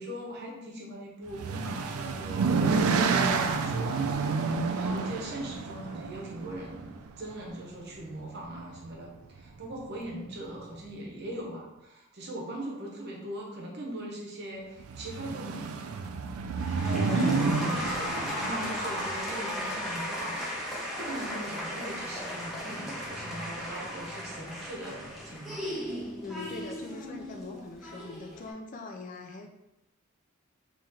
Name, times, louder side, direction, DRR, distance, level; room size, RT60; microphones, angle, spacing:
voice 1, 0.0-15.7 16.8-20.7 21.0-25.7, right 1 dB, 50° right, -2 dB, 0.8 m, -40 dB
sound 1, 1.3-7.5 8.5-8.9 9.2-9.3 9.6-9.7 14.8-19.2, right 4 dB, 80° right, 0.3 m, -29 dB
sound 2, 16.6-28.5, equal, ahead, 0.7 m, -36 dB
voice 2, 17.1-17.7 26.2-29.5, left 3 dB, 35° left, 3 dB, 0.3 m, -39 dB
3.0 x 2.8 x 3.6 m, 0.92 s
head